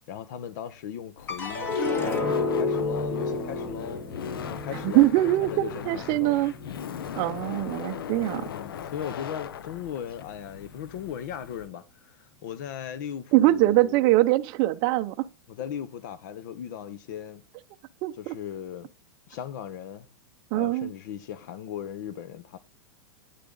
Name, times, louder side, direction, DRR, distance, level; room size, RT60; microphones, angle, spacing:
voice 1, 0.1-6.5 8.3-14.0 15.5-17.4 18.2-18.9 19.3-20.1 20.5-22.6, left 9 dB, 55° left, 0.8 m, -38 dB
Laughter, 1.2-11.7, left 8 dB, 90° left, 0.7 m, -40 dB
sound 1, 1.3-7.7 8.2-8.8, left 3 dB, 20° left, 1.5 m, -31 dB
voice 2, 4.8-6.5 7.2-8.5 13.3-15.3 18.0-18.3 20.5-20.9, right 17 dB, 35° right, 0.5 m, -23 dB
9.4 x 6.8 x 3.9 m
supercardioid pair, 150°, 12 cm